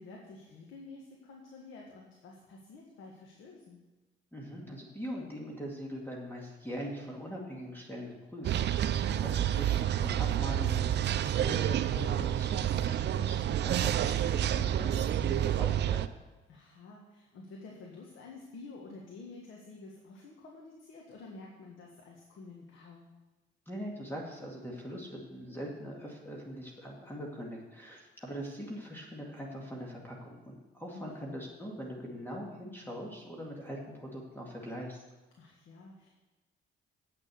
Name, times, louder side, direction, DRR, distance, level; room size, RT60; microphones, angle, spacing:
voice 1, 0.0-3.8 16.5-23.2 30.9-31.4 35.4-36.1, left 3 dB, 80° left, -1 dB, 1.7 m, -50 dB
voice 2, 4.3-16.0 23.7-35.0, equal, 10° left, -2 dB, 2.2 m, -42 dB
sound 1, 8.4-16.1, right 11 dB, 60° right, 0.5 m, -29 dB
8.7 x 6.3 x 8.4 m, 1.1 s
cardioid pair, 90°, 20 cm